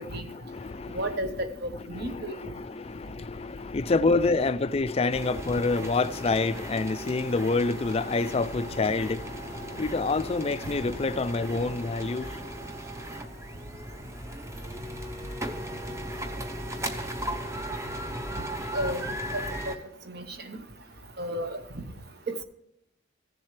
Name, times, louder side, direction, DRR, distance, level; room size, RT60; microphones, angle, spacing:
voice 1, 0.0-1.2 2.1-12.3, left 3 dB, 30° left, 0.4 m, -27 dB
voice 2, 0.9-2.5 18.7-19.1 19.7-19.8 20.1-20.6 21.2-21.8 22.3-22.4, right 1 dB, 50° right, 1.0 m, -33 dB
sound 1, 5.1-19.8, right 1 dB, 15° right, 0.7 m, -37 dB
16.0 x 7.3 x 3.2 m
head